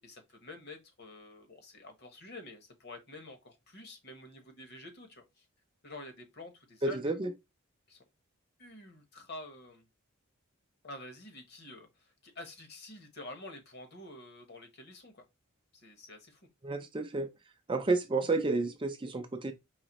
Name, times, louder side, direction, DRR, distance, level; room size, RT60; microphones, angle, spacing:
voice 1, 0.0-5.5 5.8-7.2 7.9-8.0 8.6-9.9 10.8-15.2 15.7-16.4, left 2 dB, 50° left, 1.1 m, -48 dB
voice 2, 6.8-7.3 16.6-17.3 17.7-19.5, right 3 dB, 20° right, 0.4 m, -31 dB
5.0 x 3.2 x 2.9 m
head